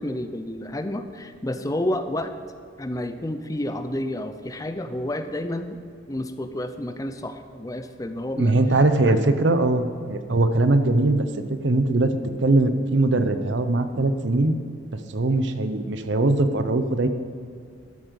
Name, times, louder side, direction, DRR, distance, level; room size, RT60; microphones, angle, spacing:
voice 1, 0.0-2.3 2.8-5.8 6.1-8.5 9.1-9.2, left 1 dB, 20° left, 8 dB, 0.5 m, -30 dB
voice 2, 8.4-11.3 11.6-12.1 12.4-14.6 15.1-17.1, right 2 dB, 70° right, 9 dB, 0.7 m, -21 dB
13.0 x 7.5 x 5.3 m, 2.2 s
head